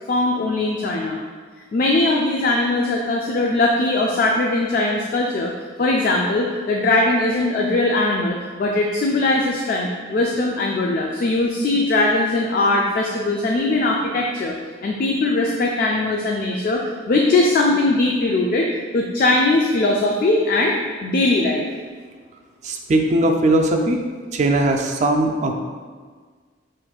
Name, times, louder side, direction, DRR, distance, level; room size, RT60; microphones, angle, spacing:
voice 1, 0.1-1.2 1.7-5.5 5.8-14.6 14.8-18.7 18.9-20.8 21.0-21.7, left 2 dB, 50° left, 0 dB, 0.3 m, -20 dB
voice 2, 22.6-24.0 24.3-25.5, right 1 dB, 40° right, 2 dB, 0.4 m, -19 dB
5.7 x 2.5 x 2.3 m, 1.6 s
head